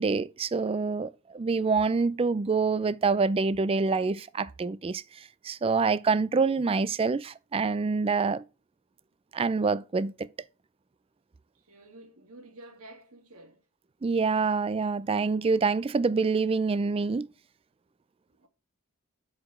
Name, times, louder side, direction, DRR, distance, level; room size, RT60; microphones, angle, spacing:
voice 1, 0.0-5.0 5.4-8.4 9.3-10.3 14.0-17.3, right 4 dB, 25° right, 0.3 m, -26 dB
voice 2, 11.6-13.6 18.3-18.5, right 1 dB, 75° right, 2.0 m, -50 dB
6.5 x 4.8 x 6.0 m
head